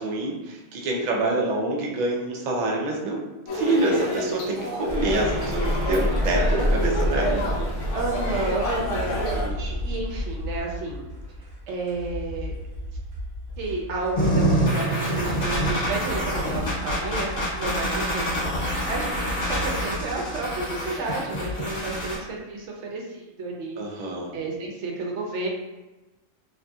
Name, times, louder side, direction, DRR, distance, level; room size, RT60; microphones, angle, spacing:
voice 1, 0.0-3.2 3.5-7.4 9.0-9.6 23.8-24.3, right 2 dB, 85° right, -1 dB, 0.3 m, -26 dB
sound 1, 3.5-9.5, equal, 70° left, 0.9 m, -31 dB
voice 2, 3.6-4.0 5.8-6.8 7.2-7.7 7.9-11.1 11.7-12.5 13.6-23.8 24.3-25.5, right 3 dB, 65° right, -1 dB, 0.9 m, -32 dB
sound 2, 4.9-21.5, equal, 45° right, 1.0 m, -31 dB
sound 3, 14.2-22.2, right 1 dB, 50° left, 1.2 m, -26 dB
2.7 x 2.6 x 2.2 m, 1.1 s
omnidirectional pair, 1.4 m